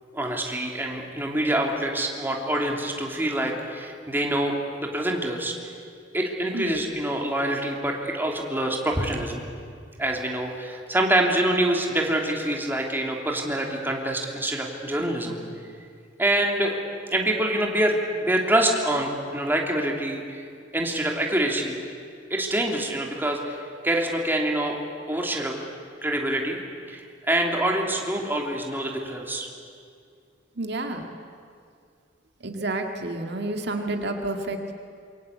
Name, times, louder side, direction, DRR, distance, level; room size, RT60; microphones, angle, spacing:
voice 1, 0.1-5.5 6.1-9.4 10.0-15.4 16.2-16.8 17.1-20.4 20.7-21.7 22.3-24.8 25.1-25.5 26.0-26.6 26.9-29.5, right 1 dB, 10° right, 0 dB, 3.1 m, -26 dB
voice 2, 30.6-31.0 32.4-34.7, right 2 dB, 65° right, 4 dB, 2.1 m, -29 dB
27.5 x 23.5 x 8.5 m, 2.3 s
head